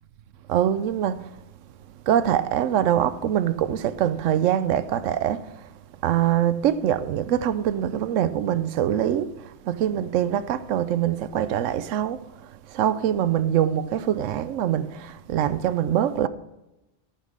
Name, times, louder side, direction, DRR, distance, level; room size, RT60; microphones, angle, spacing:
voice 1, 0.5-1.3 2.1-5.4 6.0-9.3 9.6-12.2 12.7-16.3, right 10 dB, 85° right, 1.0 m, -23 dB
13.0 x 5.9 x 6.4 m
omnidirectional pair, 1.3 m